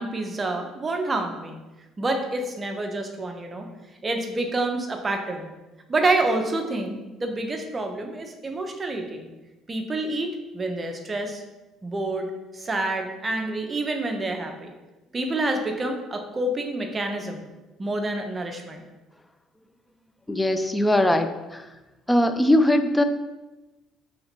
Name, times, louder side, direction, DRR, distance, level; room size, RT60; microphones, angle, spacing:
voice 1, 0.0-1.6 2.0-3.7 4.0-5.5 5.9-9.3 9.7-11.4 11.8-12.3 12.5-14.7 15.1-17.5 17.8-18.8, right 2 dB, 30° right, 3 dB, 0.7 m, -28 dB
voice 2, 20.3-21.7 22.1-23.0, left 1 dB, 10° left, 8 dB, 0.4 m, -21 dB
3.3 x 2.8 x 4.3 m, 1.1 s
supercardioid pair, 65°, 0 cm